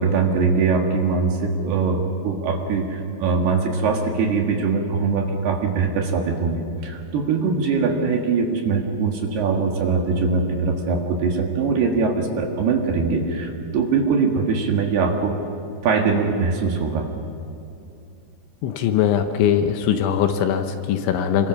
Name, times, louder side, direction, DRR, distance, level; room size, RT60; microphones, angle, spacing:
voice 1, 0.0-15.4 15.8-17.1, right 4 dB, 60° right, 2 dB, 3.2 m, -22 dB
voice 2, 18.6-21.5, left 9 dB, 75° left, 7 dB, 3.1 m, -21 dB
27.0 x 23.0 x 6.3 m, 2.6 s
omnidirectional pair, 5.8 m